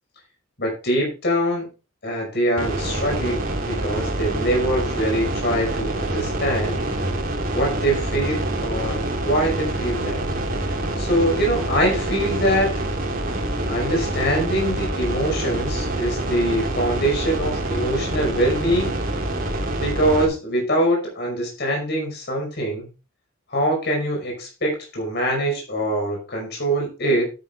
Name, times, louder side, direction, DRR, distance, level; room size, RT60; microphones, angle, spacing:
voice 1, 0.6-1.7 2.0-6.8 7.5-10.2 11.0-12.7 13.7-18.9 19.8-22.9 23.5-27.2, right 1 dB, 50° left, 0 dB, 5.6 m, -23 dB
sound 1, 2.6-20.3, right 1 dB, 40° right, 2.9 m, -26 dB
12.0 x 9.5 x 3.5 m, 0.31 s
head